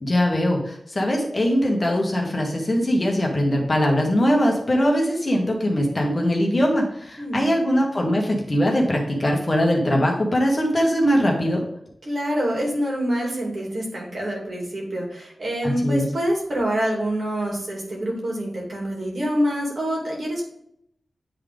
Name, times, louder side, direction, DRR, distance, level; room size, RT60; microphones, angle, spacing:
voice 1, 0.0-11.6 15.6-16.1, equal, 30° left, 0 dB, 1.5 m, -21 dB
voice 2, 7.2-7.5 12.0-20.4, equal, 60° right, -2 dB, 2.4 m, -26 dB
9.4 x 3.8 x 3.5 m, 0.75 s
wide cardioid pair, 115°, 0 cm